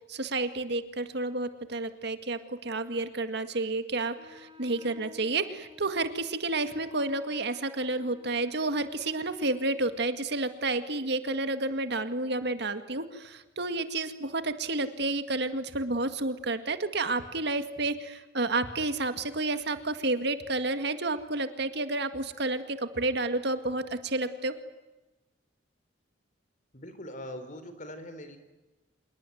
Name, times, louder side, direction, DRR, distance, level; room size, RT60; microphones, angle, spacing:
voice 1, 0.0-24.6, right 2 dB, 65° right, 9 dB, 2.0 m, -30 dB
Wind instrument woodwind instrument, 4.2-10.0, left 1 dB, 30° right, 2.3 m, -53 dB
voice 2, 26.7-28.4, left 1 dB, 45° left, 10 dB, 3.9 m, -42 dB
26.5 x 22.0 x 9.3 m, 1.1 s
head